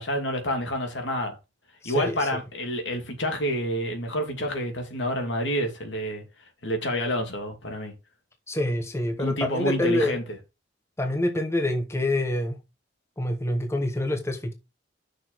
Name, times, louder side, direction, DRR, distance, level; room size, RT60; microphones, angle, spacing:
voice 1, 0.0-1.4 1.8-6.2 6.6-7.9 9.2-10.2, equal, 75° left, 2.5 m, -28 dB
voice 2, 1.8-2.4 8.5-10.2 11.0-12.6 13.2-14.5, left 1 dB, 15° left, 1.0 m, -26 dB
6.4 x 4.4 x 6.2 m
head